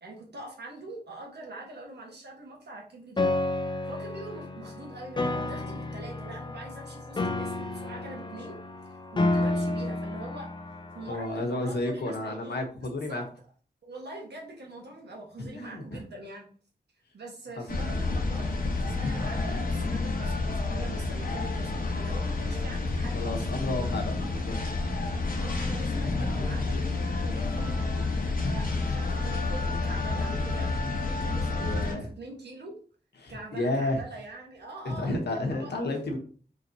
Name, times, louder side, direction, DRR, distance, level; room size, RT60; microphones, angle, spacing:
voice 1, 0.0-3.3 3.9-8.5 9.1-10.5 10.9-13.2 13.8-16.5 17.1-23.7 24.2-24.4 25.3-26.9 27.2-27.8 28.4-30.7 31.0-32.8 33.3-35.7, right 2 dB, 85° right, -1 dB, 1.3 m, -43 dB
Piano, 3.2-11.2, left 2 dB, 25° left, 0.4 m, -31 dB
voice 2, 11.1-13.2 15.4-16.0 17.6-17.7 23.1-24.5 31.6-32.1 33.2-34.0 34.8-36.2, left 2 dB, 90° left, 3 dB, 0.9 m, -31 dB
sound 1, 17.7-31.9, left 3 dB, 60° left, 0.9 m, -29 dB
4.1 x 3.1 x 2.7 m, 0.42 s
wide cardioid pair, 65°, 17 cm